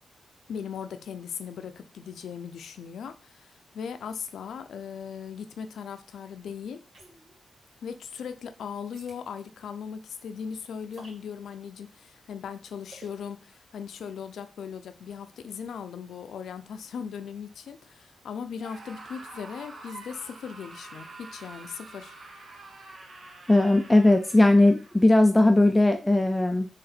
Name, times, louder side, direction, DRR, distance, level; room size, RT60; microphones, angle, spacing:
voice 1, 0.5-6.8 7.8-22.2, left 7 dB, 80° left, 0.5 m, -38 dB
sound 1, 6.9-7.4 8.9-9.2 10.9-11.2 12.9-13.2, right 1 dB, 70° right, 2.2 m, -50 dB
Screaming, 18.5-25.0, right 3 dB, 55° right, 1.1 m, -46 dB
voice 2, 23.5-26.7, left 2 dB, 15° left, 0.5 m, -19 dB
4.0 x 3.2 x 4.2 m
supercardioid pair, 55°, 0 cm